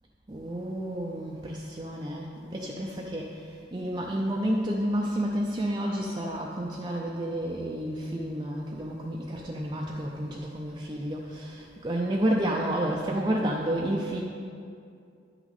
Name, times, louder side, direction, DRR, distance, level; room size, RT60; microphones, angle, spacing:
voice 1, 0.3-14.2, right 1 dB, 25° right, -2 dB, 0.5 m, -30 dB
10.5 x 6.0 x 4.1 m, 2.5 s
head